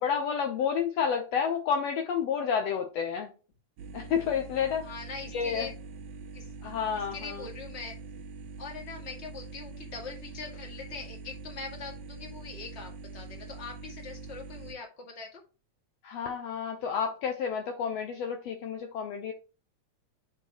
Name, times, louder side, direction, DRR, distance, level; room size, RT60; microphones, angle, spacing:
voice 1, 0.0-3.3 3.9-4.9 5.3-5.7 6.6-7.5 16.0-19.3, left 7 dB, 70° left, 3 dB, 1.8 m, -30 dB
sound 1, 3.8-14.7, right 3 dB, 75° right, 2.1 m, -44 dB
voice 2, 4.8-5.7 6.3-6.5 7.1-8.0 8.6-15.4, left 4 dB, 25° left, 0 dB, 1.8 m, -42 dB
9.0 x 4.4 x 2.9 m, 0.34 s
omnidirectional pair, 3.4 m